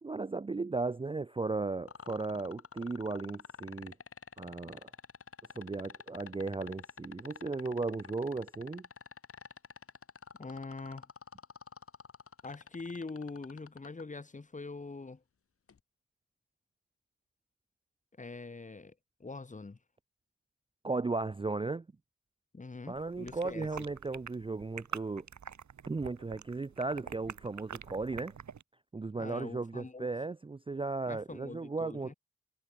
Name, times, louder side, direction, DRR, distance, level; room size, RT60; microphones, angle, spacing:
voice 1, 0.0-4.0 4.4-4.9 5.6-8.9 20.8-21.9 22.9-25.3 25.9-28.4 28.9-32.1, right 3 dB, 20° right, 0.4 m, -36 dB
sound 1, 1.9-14.0 15.7-15.8, left 6 dB, 50° left, 1.0 m, -48 dB
voice 2, 10.4-11.1 12.4-15.2 18.2-18.9 19.2-19.8 22.5-23.7 29.2-30.1 31.0-32.1, left 3 dB, 25° left, 0.9 m, -43 dB
sound 2, 22.9-28.6, right 7 dB, 70° right, 1.3 m, -46 dB
wide cardioid pair, 90°, 30 cm